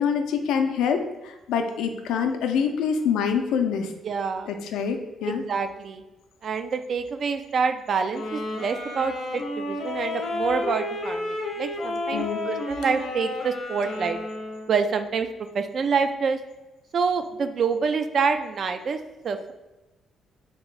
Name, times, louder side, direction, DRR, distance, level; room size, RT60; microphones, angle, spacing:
voice 1, 0.0-3.9 4.5-5.4 12.1-12.5, left 6 dB, 90° left, 5 dB, 0.4 m, -25 dB
voice 2, 4.0-4.5 5.3-6.0 6.4-14.2 14.7-15.3 15.5-16.4 16.9-19.5, right 5 dB, 55° right, 8 dB, 0.3 m, -27 dB
sound 1, 8.1-14.7, left 2 dB, 70° left, 0.8 m, -31 dB
3.5 x 2.9 x 3.1 m, 1.1 s
cardioid pair, 90°, 0 cm